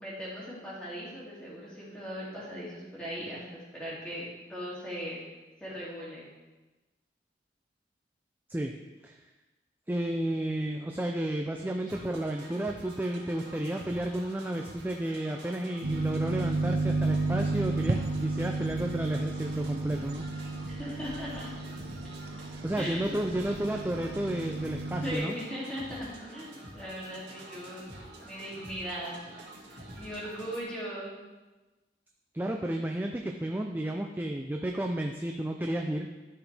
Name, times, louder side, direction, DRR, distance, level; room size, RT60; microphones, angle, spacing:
voice 1, 0.0-5.2 5.6-6.3 20.5-21.5 22.8-23.3 25.0-27.9 28.2-29.1 29.7-31.1, equal, 5° left, -9 dB, 2.6 m, -39 dB
voice 2, 9.9-20.3 22.6-25.3 32.3-36.1, right 1 dB, 10° right, 2 dB, 0.4 m, -32 dB
sound 1, 11.8-30.6, right 1 dB, 85° right, 1.9 m, -48 dB
sound 2, 15.8-25.2, right 3 dB, 65° right, 0.7 m, -32 dB
13.0 x 4.9 x 3.4 m, 1.2 s
head